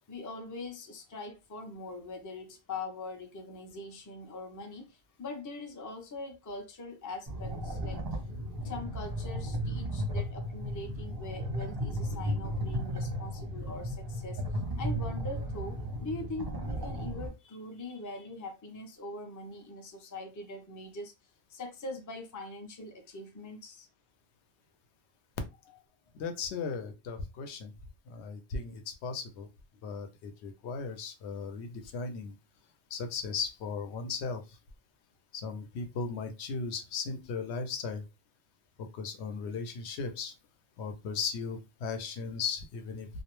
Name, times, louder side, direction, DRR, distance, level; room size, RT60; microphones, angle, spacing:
voice 1, 0.0-8.2 8.6-14.4 14.8-21.1 21.5-23.9, left 2 dB, 30° left, 0.4 m, -42 dB
sound 1, 7.3-17.3, equal, 25° right, 0.5 m, -35 dB
voice 2, 26.1-27.7 28.1-29.5 29.8-32.3 32.9-34.4 35.3-38.0 38.8-40.3 40.8-43.1, left 5 dB, 90° left, 0.9 m, -37 dB
2.4 x 2.0 x 2.9 m
omnidirectional pair, 1.1 m